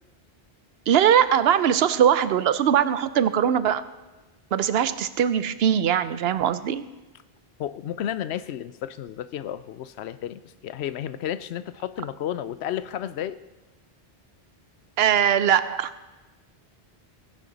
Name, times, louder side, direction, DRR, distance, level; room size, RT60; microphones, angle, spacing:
voice 1, 0.9-3.8 4.5-6.8 15.0-16.1, right 9 dB, 75° right, 14 dB, 0.8 m, -21 dB
voice 2, 7.6-13.4, left 11 dB, 90° left, 15 dB, 0.8 m, -32 dB
16.5 x 10.5 x 4.0 m, 1.2 s
omnidirectional pair, 1.1 m